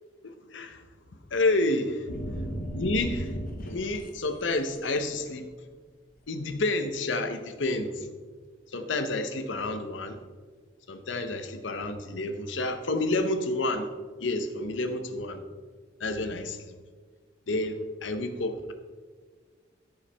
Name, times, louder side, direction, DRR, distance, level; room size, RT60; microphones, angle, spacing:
voice 1, 0.2-0.8 1.3-2.0 2.7-3.3 3.7-5.5 6.3-8.1 8.7-10.2 10.9-13.9 14.2-15.4 16.0-16.7 17.5-18.7, left 2 dB, 75° left, 8 dB, 0.8 m, -29 dB
sound 1, 2.1-4.1 4.5-5.0, equal, 50° left, 1.0 m, -35 dB
14.0 x 5.7 x 3.4 m, 1.5 s
head